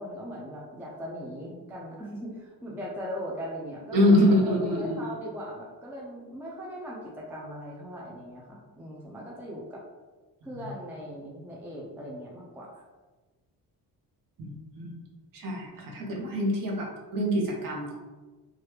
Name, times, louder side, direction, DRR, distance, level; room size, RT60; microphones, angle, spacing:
voice 1, 0.0-9.8 10.4-12.8 15.8-16.0, equal, 5° right, -3 dB, 0.3 m, -39 dB
voice 2, 3.9-5.0 14.4-14.9 15.3-17.9, left 1 dB, 60° right, -1 dB, 0.8 m, -25 dB
2.9 x 2.4 x 3.2 m, 1.2 s
cardioid pair, 170°, 37 cm